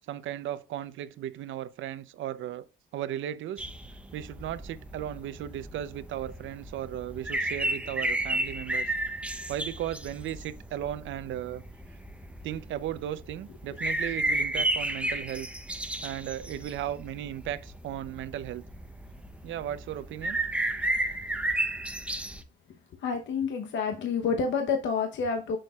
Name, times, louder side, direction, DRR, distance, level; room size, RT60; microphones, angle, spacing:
voice 1, 0.1-2.7 2.9-3.6 4.1-8.9 9.5-11.6 12.4-15.5 16.0-18.6 19.4-20.4, right 11 dB, 75° right, 0.6 m, -36 dB
sound 1, 3.6-22.4, right 1 dB, 5° right, 0.7 m, -33 dB
voice 2, 22.9-25.6, left 5 dB, 70° left, 0.9 m, -29 dB
8.8 x 6.4 x 2.4 m
cardioid pair, 90°, 20 cm